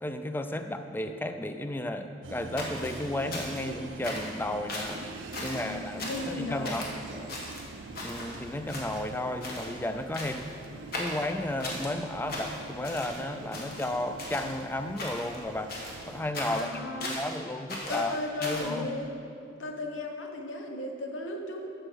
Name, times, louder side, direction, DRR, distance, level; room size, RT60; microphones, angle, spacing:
voice 1, 0.0-5.0 5.4-6.9 7.1-7.3 8.0-10.5 11.0-15.8 16.0-16.7 16.9-18.9, left 1 dB, 10° left, 8 dB, 0.4 m, -33 dB
sound 1, 2.2-16.3, right 3 dB, 90° right, 0.5 m, -45 dB
sound 2, 2.6-3.7 4.0-4.4 4.7-5.0 5.3-5.7 6.0-6.3 6.6-6.9 7.3-8.4 8.7-9.2 9.4-9.7 10.1-10.5 10.9-11.9 12.3-13.2 13.5-14.6 15.0-15.4 15.7-17.4 17.7-18.7, left 1 dB, 55° left, 1.5 m, -38 dB
voice 2, 5.4-6.8 16.4-17.2 17.9-19.1 19.5-21.7, left 2 dB, 90° left, 2 dB, 1.1 m, -36 dB
7.8 x 6.7 x 6.2 m, 2.5 s
head